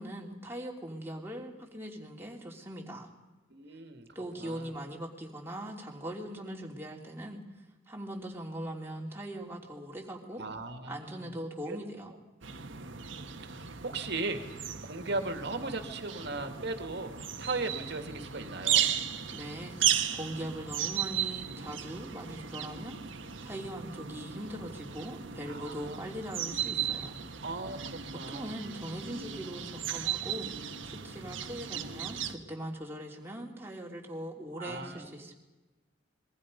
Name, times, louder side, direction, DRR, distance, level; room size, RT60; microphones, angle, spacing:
voice 1, 0.0-3.1 4.1-7.4 7.9-10.4 10.9-12.1 19.3-27.1 28.3-35.3, right 1 dB, 10° right, -1 dB, 3.1 m, -41 dB
voice 2, 3.5-4.1 4.4-4.7 10.3-11.3 11.7-11.8 12.8-14.4 14.8-17.1 17.4-18.8 25.5-26.0 27.4-28.6 31.7-32.1 34.5-35.1, right 3 dB, 60° right, 6 dB, 2.3 m, -38 dB
sound 1, 12.4-32.3, right 9 dB, 75° right, 1.6 m, -35 dB
27.0 x 22.5 x 5.4 m, 1.2 s
head